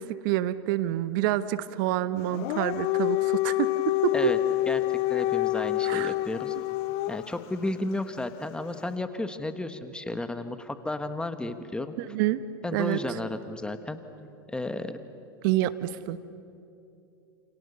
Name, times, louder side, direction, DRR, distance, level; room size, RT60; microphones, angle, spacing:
voice 1, 0.0-4.1 5.8-6.1 12.0-12.4 12.7-13.0 15.4-16.2, right 14 dB, 60° right, 13 dB, 1.2 m, -28 dB
Dog, 2.2-7.4, left 18 dB, 50° left, 0.6 m, -27 dB
voice 2, 4.7-6.5 7.1-11.9 12.6-14.0 14.5-15.0, left 2 dB, 5° left, 9 dB, 1.4 m, -33 dB
29.5 x 28.0 x 6.9 m, 2.7 s
hypercardioid pair, 100°, 12 cm